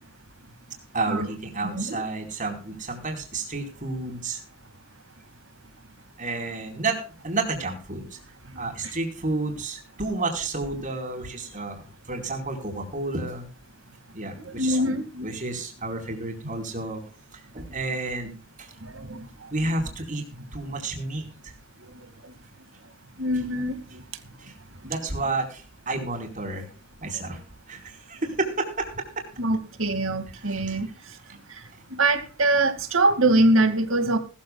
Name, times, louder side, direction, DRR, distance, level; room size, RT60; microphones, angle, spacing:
voice 1, 0.9-4.4 6.2-8.2 8.6-11.8 12.1-13.5 14.1-14.9 15.2-17.0 17.3-18.7 19.5-20.2 20.5-21.2 24.4-24.5 24.8-26.7 27.0-27.4 27.7-29.1 30.4-30.8, right 3 dB, 40° right, 4.5 m, -31 dB
voice 2, 1.6-2.0 14.4-15.3 19.0-19.2 23.2-23.8 29.4-30.9 31.9-34.2, right 2 dB, 75° right, 2.2 m, -23 dB
20.0 x 14.5 x 2.4 m
head